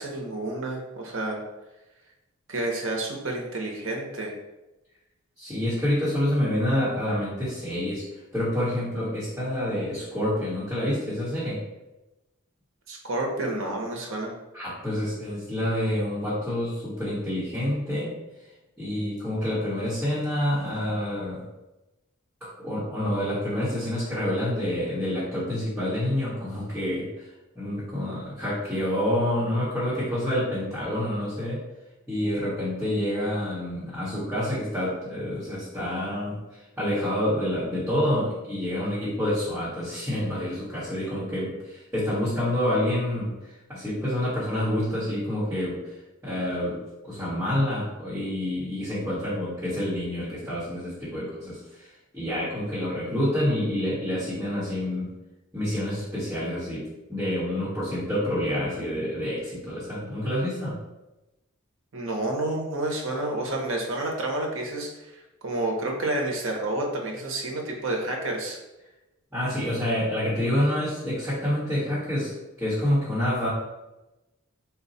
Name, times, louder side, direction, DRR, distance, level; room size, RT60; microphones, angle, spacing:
voice 1, 0.0-1.4 2.5-4.3 12.9-14.3 61.9-65.1 65.4-68.6, right 2 dB, 60° right, 0 dB, 0.8 m, -29 dB
voice 2, 5.4-8.0 8.3-11.6 14.5-18.1 18.8-21.5 22.4-27.2 27.5-31.6 32.1-36.4 36.8-45.8 46.2-55.1 55.5-56.8 57.1-60.8 69.3-72.3 72.6-73.5, left 1 dB, 5° right, -10 dB, 1.2 m, -28 dB
4.1 x 2.3 x 4.0 m, 1.0 s
head